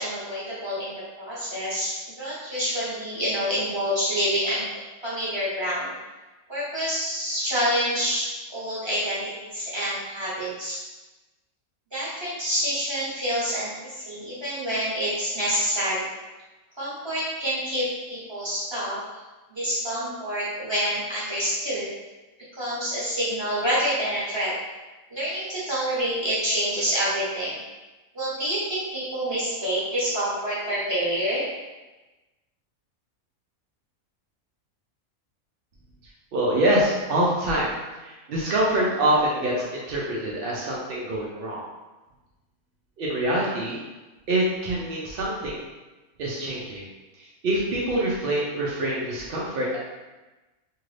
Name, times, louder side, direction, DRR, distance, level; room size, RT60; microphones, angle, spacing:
voice 1, 0.0-4.6 5.0-5.9 6.5-10.8 11.9-16.1 16.8-19.0 19.5-21.9 22.5-24.5 25.1-27.6 28.1-31.4, equal, 25° right, -10 dB, 0.8 m, -27 dB
voice 2, 36.3-37.7 38.0-41.6 43.0-43.8 44.3-45.6 46.2-46.8 47.2-49.8, right 1 dB, 70° right, -5 dB, 0.5 m, -25 dB
2.7 x 2.5 x 3.1 m, 1.1 s
omnidirectional pair, 1.5 m